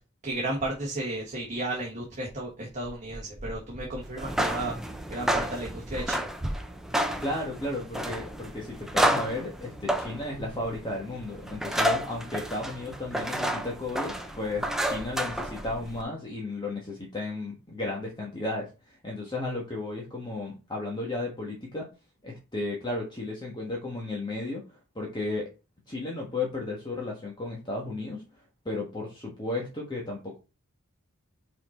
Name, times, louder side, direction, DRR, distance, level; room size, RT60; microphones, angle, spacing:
voice 1, 0.2-4.7 5.1-6.5, right 1 dB, 35° right, -2 dB, 1.5 m, -33 dB
sound 1, 4.1-16.0, equal, ahead, 0.6 m, -31 dB
voice 2, 7.2-21.9 22.2-25.5 25.9-28.2 28.6-30.4, left 2 dB, 20° left, -2 dB, 1.4 m, -34 dB
5.5 x 4.4 x 4.3 m, 0.29 s
head